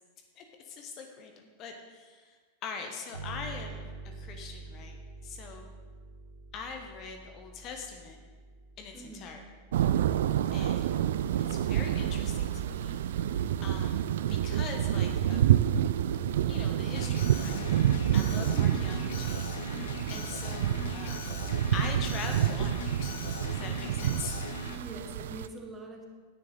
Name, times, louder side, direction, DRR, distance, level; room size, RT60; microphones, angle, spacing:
voice 1, 0.4-2.4 2.6-5.0 5.2-5.7 6.5-8.2 8.8-9.4 10.5-10.9 11.5-13.0 13.3-13.4 13.6-15.6 16.5-17.6 18.1-19.5 20.1-21.3 21.7-24.3, left 5 dB, 35° left, 4 dB, 1.1 m, -42 dB
sound 1, 3.1-12.4, right 3 dB, 80° right, 2.1 m, -47 dB
voice 2, 8.9-9.3 10.5-11.0 18.5-18.8 24.7-26.0, right 2 dB, 15° right, 1 dB, 1.7 m, -44 dB
sound 2, 9.7-25.5, right 11 dB, 60° right, 0.3 m, -28 dB
Alarm, 17.0-24.8, left 4 dB, 60° left, 1.1 m, -40 dB
10.0 x 9.6 x 4.0 m, 1.5 s
figure-of-eight pair, 90°, 0 cm